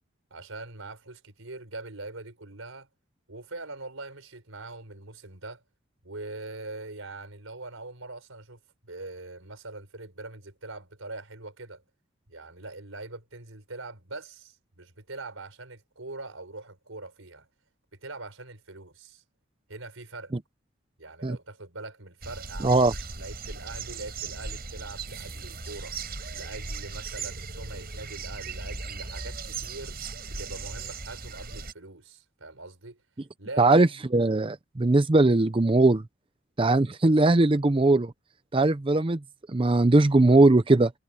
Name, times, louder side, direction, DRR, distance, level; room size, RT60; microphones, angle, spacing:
voice 1, 0.3-2.9 3.3-5.6 6.0-11.8 12.3-17.5 18.0-19.2 19.7-20.4 21.0-22.8 23.1-25.9 26.3-30.0 30.3-33.0 33.4-34.0, right 2 dB, 85° right, 4.7 m, -42 dB
sound 1, 22.2-31.7, right 4 dB, 50° right, 5.9 m, -37 dB
voice 2, 22.6-22.9 33.6-36.0 36.6-38.1 38.5-39.2 39.5-40.9, right 2 dB, 25° right, 0.6 m, -20 dB
head